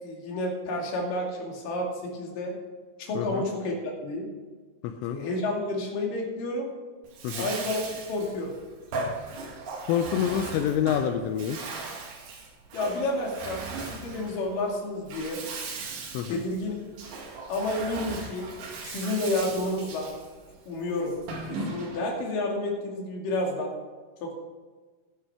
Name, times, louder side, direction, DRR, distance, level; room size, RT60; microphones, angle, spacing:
voice 1, 0.0-2.5 3.0-3.7 4.0-4.3 5.1-6.7 7.4-7.8 8.1-8.5 12.7-15.4 16.3-16.8 17.5-18.5 18.8-20.1 20.7-21.1 21.5-23.7 24.2-24.3, left 2 dB, 50° left, -1 dB, 3.5 m, -30 dB
voice 2, 4.8-5.2 7.2-7.5 9.9-11.6 16.1-16.4, left 9 dB, 85° left, 7 dB, 3.2 m, -27 dB
Bathtub (filling or washing), 7.0-22.2, right 3 dB, 65° right, 4.4 m, -38 dB
11.5 x 11.5 x 4.8 m, 1.4 s
omnidirectional pair, 5.8 m